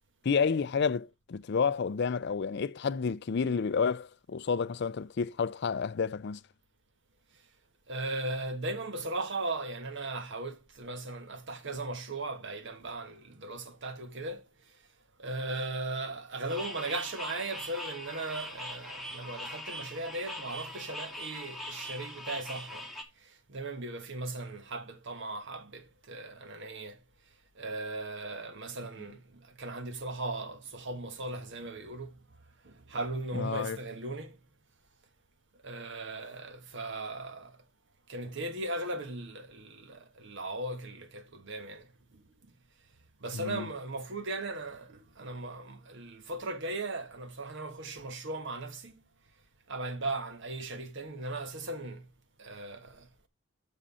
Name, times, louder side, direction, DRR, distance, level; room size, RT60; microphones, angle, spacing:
voice 1, 0.2-6.4 33.3-33.8 43.3-43.6, left 5 dB, 50° left, 0.4 m, -30 dB
voice 2, 7.9-14.4 15.2-22.9 23.2-27.0 27.6-32.1 32.6-34.4 35.6-37.6 38.1-41.9 42.1-42.2 43.2-48.9 49.7-52.1 52.4-53.1, right 2 dB, 60° right, 1.4 m, -38 dB
sound 1, 16.5-23.0, left 1 dB, ahead, 1.4 m, -41 dB
7.5 x 6.6 x 4.2 m
head